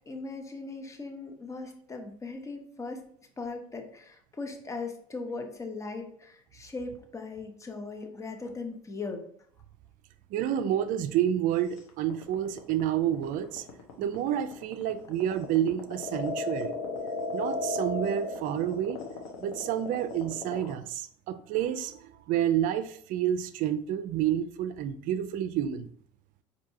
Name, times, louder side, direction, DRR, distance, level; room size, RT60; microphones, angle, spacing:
voice 1, 0.1-3.0 3.4-9.2, left 3 dB, 20° left, 4 dB, 0.7 m, -39 dB
voice 2, 10.3-13.6 14.0-16.8 17.3-19.0 19.4-25.9, right 10 dB, 60° right, 12 dB, 0.4 m, -29 dB
sound 1, 11.8-20.7, left 2 dB, 85° left, 0.8 m, -35 dB
4.4 x 2.7 x 2.7 m, 0.62 s
supercardioid pair, 90°, 16 cm